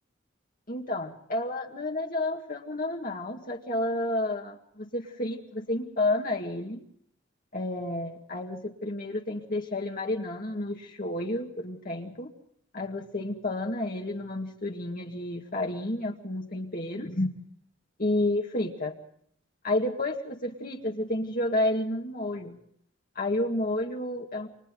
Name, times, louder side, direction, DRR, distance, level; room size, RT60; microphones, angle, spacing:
voice 1, 0.7-6.8 7.5-12.3 12.7-17.3 18.0-19.0 19.6-22.6 23.2-24.5, left 1 dB, 45° left, 0 dB, 2.1 m, -30 dB
30.0 x 26.5 x 3.9 m, 0.64 s
head